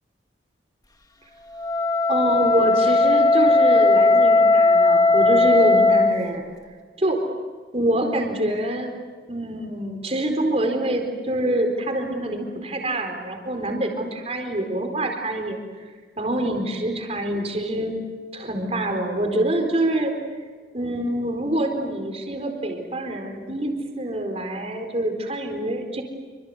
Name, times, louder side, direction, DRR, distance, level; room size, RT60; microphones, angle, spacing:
Wind instrument woodwind instrument, 1.5-6.2, left 3 dB, 20° left, 1.5 m, -17 dB
voice 1, 2.1-6.5 7.0-7.2 7.7-8.9 9.3-15.6 16.2-18.0 18.3-20.1 20.7-26.0, right 1 dB, 35° right, 4 dB, 4.3 m, -25 dB
27.0 x 25.5 x 8.0 m, 1.5 s
head